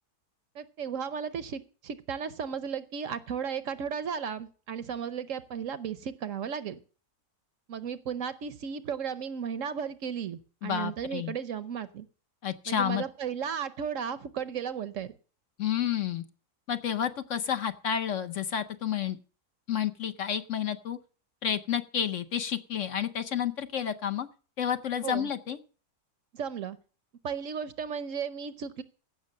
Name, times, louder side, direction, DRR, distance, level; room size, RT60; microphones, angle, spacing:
voice 1, 0.5-6.8 7.7-12.1 12.7-15.1 25.0-25.3 26.3-26.8 27.2-28.8, right 7 dB, 60° right, 14 dB, 1.0 m, -35 dB
voice 2, 10.6-11.3 12.4-13.0 15.6-16.2 16.7-19.2 19.7-21.0 21.4-24.3 24.6-25.6, left 9 dB, 60° left, 9 dB, 1.0 m, -30 dB
15.5 x 6.3 x 6.4 m, 0.39 s
omnidirectional pair, 1.6 m